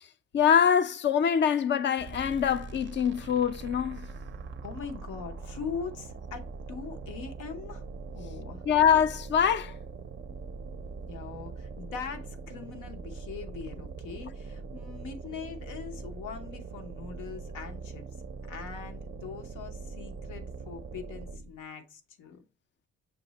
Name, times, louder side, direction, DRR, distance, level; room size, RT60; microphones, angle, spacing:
voice 1, 0.3-4.0 8.7-9.7, left 8 dB, 40° left, 0.4 m, -24 dB
sound 1, 2.0-21.6, right 4 dB, 40° right, 0.4 m, -42 dB
voice 2, 4.6-7.8 8.1-8.6 11.1-18.1 18.5-22.4, left 6 dB, 90° left, 0.8 m, -41 dB
5.8 x 2.0 x 3.9 m
cardioid pair, 90°, 30 cm